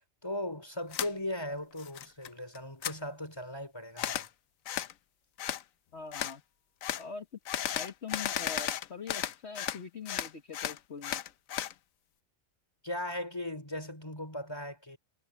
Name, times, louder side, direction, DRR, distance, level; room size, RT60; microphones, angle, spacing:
voice 1, 0.2-4.3 12.8-15.0, left 1 dB, 20° left, 5.1 m, -38 dB
sound 1, 0.9-1.1 1.5-2.3 2.6-3.0 4.0-4.3 4.7-4.9 5.4-5.6 6.1-6.4 6.8-7.0 7.5-9.8 10.1-11.7, left 11 dB, 75° left, 1.1 m, -34 dB
voice 2, 5.9-6.4 7.0-7.3 7.7-11.2, left 5 dB, 50° left, 1.8 m, -43 dB
omnidirectional pair, 1.4 m